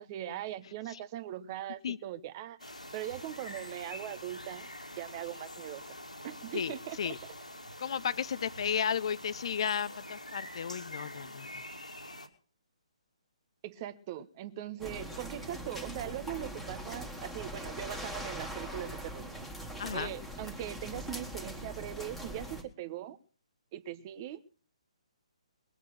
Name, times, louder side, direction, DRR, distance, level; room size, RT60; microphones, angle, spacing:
voice 1, 0.0-4.7 5.0-6.0 6.2-7.3 13.6-19.5 19.9-23.2 23.7-24.6, right 12 dB, 30° right, 1.1 m, -41 dB
sound 1, 2.6-12.3, left 1 dB, 90° left, 2.5 m, -46 dB
voice 2, 6.5-7.2 7.8-11.6 19.8-20.1, left 7 dB, 50° left, 0.7 m, -34 dB
sound 2, 14.8-22.6, equal, ahead, 2.0 m, -41 dB
21.0 x 8.1 x 6.3 m
figure-of-eight pair, 135°, 4 cm